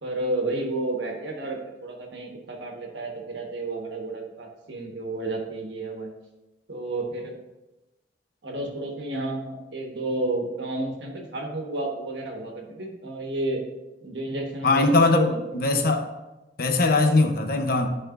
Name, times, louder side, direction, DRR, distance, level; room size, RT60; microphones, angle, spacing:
voice 1, 0.0-6.1 6.7-7.3 8.4-13.6 14.0-15.4, right 2 dB, 85° right, 1 dB, 1.4 m, -31 dB
voice 2, 14.6-16.1 16.6-17.9, left 3 dB, 60° left, 5 dB, 0.8 m, -21 dB
12.0 x 4.2 x 2.5 m, 1.0 s
head